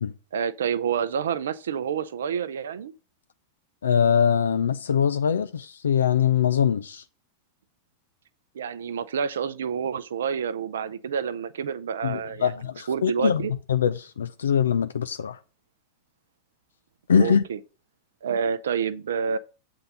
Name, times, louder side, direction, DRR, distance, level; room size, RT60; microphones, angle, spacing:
voice 1, 0.3-2.9 8.5-12.5 12.9-13.5 17.2-17.6 18.2-19.4, right 7 dB, 65° right, 0.6 m, -28 dB
voice 2, 3.8-7.0 12.0-15.4 17.1-17.4, left 7 dB, 70° left, 0.4 m, -23 dB
7.8 x 3.8 x 6.6 m
figure-of-eight pair, 90°, 0 cm